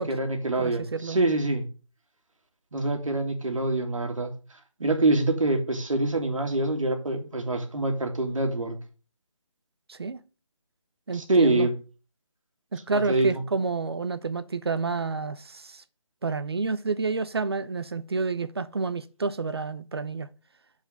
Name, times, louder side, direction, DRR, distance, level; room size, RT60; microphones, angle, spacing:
voice 1, 0.0-1.7 2.7-4.3 4.8-8.8 11.1-11.7 12.9-13.4, right 2 dB, 85° right, 2.2 m, -25 dB
voice 2, 0.6-1.2 9.9-10.2 11.1-11.7 12.7-15.8 16.2-20.3, right 4 dB, 50° right, 0.6 m, -29 dB
6.3 x 4.9 x 6.6 m
hypercardioid pair, 180°, 16 cm